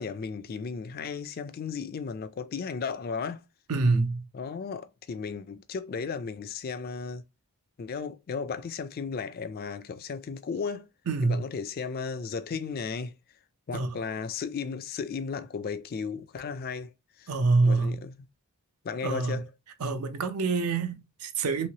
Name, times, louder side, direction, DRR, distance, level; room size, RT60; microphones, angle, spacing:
voice 1, 0.0-3.4 4.3-7.2 7.8-10.9 11.2-13.1 13.7-16.9 17.2-17.4 17.6-18.1 18.8-19.5, left 5 dB, 40° left, 0.3 m, -35 dB
voice 2, 3.7-4.2 11.1-11.4 13.7-13.9 17.3-18.0 19.0-19.4 19.8-21.7, right 3 dB, 80° right, 0.6 m, -26 dB
3.1 x 2.8 x 2.8 m
head